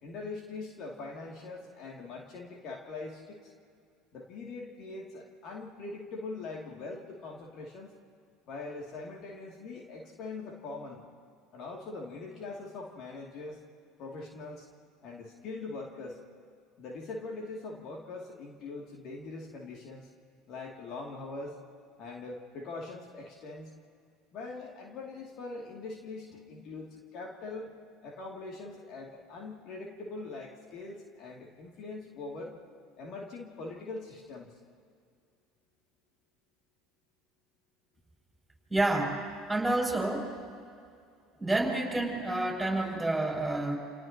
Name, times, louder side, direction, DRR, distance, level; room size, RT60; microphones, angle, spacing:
voice 1, 0.0-3.5 4.1-8.0 8.5-11.0 11.5-13.6 14.0-14.7 15.0-16.2 16.8-20.1 20.5-21.6 22.0-23.7 24.3-27.7 28.0-32.6 33.0-34.5, left 3 dB, 55° left, -1 dB, 2.7 m, -42 dB
voice 2, 38.7-39.2 39.5-40.4 41.4-43.8, right 2 dB, 5° right, -1 dB, 6.9 m, -29 dB
29.5 x 29.5 x 3.0 m, 2.3 s
hypercardioid pair, 70°, 0 cm